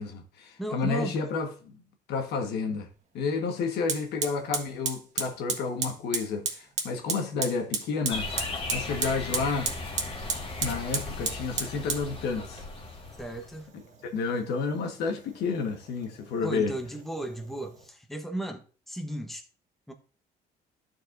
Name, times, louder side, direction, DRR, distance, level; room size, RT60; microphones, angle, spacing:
voice 1, 0.0-1.8 2.1-2.9 3.1-9.7 10.6-12.6 14.1-16.7, left 4 dB, 75° left, 1.4 m, -31 dB
voice 2, 0.6-1.2 13.2-13.7 16.4-19.5 19.9-20.0, right 1 dB, ahead, 0.9 m, -35 dB
Fire, 2.9-3.0 3.9-17.9, right 5 dB, 45° right, 1.4 m, -36 dB
sound 1, 8.1-13.6, left 3 dB, 30° left, 1.5 m, -37 dB
12.0 x 4.7 x 2.6 m
cardioid pair, 110°, 17 cm